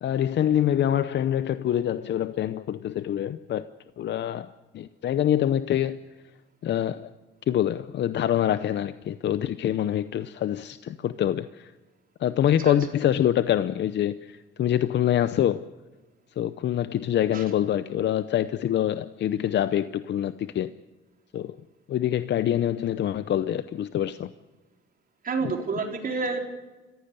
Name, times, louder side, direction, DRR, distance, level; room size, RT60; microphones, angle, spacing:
voice 1, 0.0-3.7 4.0-4.5 4.7-6.0 6.6-7.1 7.5-11.7 12.2-15.7 16.4-20.7 21.3-21.6 21.9-24.3 25.4-25.5, left 11 dB, 65° left, 0.7 m, -25 dB
voice 2, 25.2-26.4, right 4 dB, 45° right, 3.9 m, -28 dB
28.0 x 15.0 x 6.8 m
cardioid pair, 90°, 20 cm